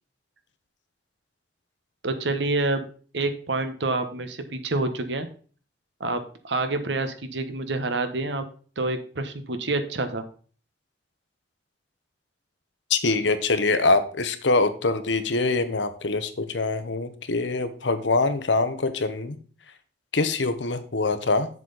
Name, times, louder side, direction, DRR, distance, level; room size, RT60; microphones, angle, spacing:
voice 1, 2.0-2.9 3.1-5.3 6.0-8.4 8.8-10.2, right 2 dB, 75° right, 9 dB, 1.2 m, -27 dB
voice 2, 12.9-19.4 20.1-21.5, left 3 dB, 90° left, 10 dB, 1.0 m, -24 dB
7.6 x 7.2 x 4.0 m, 0.41 s
head